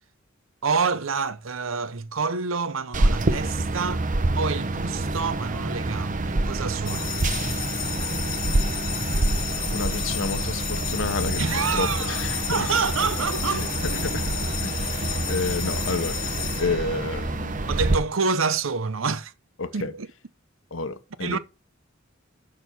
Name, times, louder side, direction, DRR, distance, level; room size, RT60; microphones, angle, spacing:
voice 1, 0.6-4.0 4.4-7.2 11.4-12.2 12.5-14.5 15.0-15.1 17.7-19.3 19.7-20.1 21.2-21.4, right 5 dB, 85° right, 0.8 m, -27 dB
sound 1, 2.9-18.0, right 2 dB, 40° right, 0.7 m, -27 dB
sound 2, 6.9-17.3, left 12 dB, 45° left, 1.0 m, -33 dB
voice 2, 9.7-11.4 11.7-12.7 13.5-17.7 19.6-19.9 20.7-21.4, left 4 dB, 70° left, 1.0 m, -30 dB
6.7 x 6.2 x 7.0 m
head